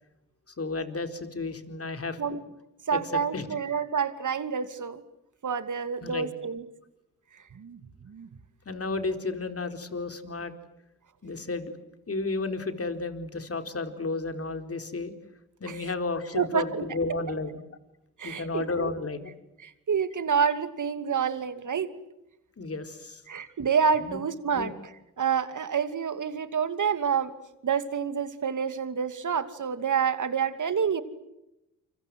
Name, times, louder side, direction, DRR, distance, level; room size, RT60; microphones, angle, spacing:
voice 1, 0.6-2.4 2.9-3.5 6.0-6.3 8.7-10.5 11.2-11.7 12.1-15.1 15.6-17.6 18.2-19.3 22.6-23.2 24.0-24.2 24.5-24.7, left 3 dB, 40° left, 7 dB, 4.4 m, -32 dB
voice 2, 2.9-5.0 5.4-6.6 7.5-8.3 15.7-15.8 16.3-16.8 18.2-18.9 19.6-21.9 23.3-24.7 25.2-27.3 27.6-31.0, right 6 dB, 55° right, 11 dB, 2.8 m, -28 dB
29.0 x 25.5 x 7.9 m, 0.90 s
supercardioid pair, 50°, 36 cm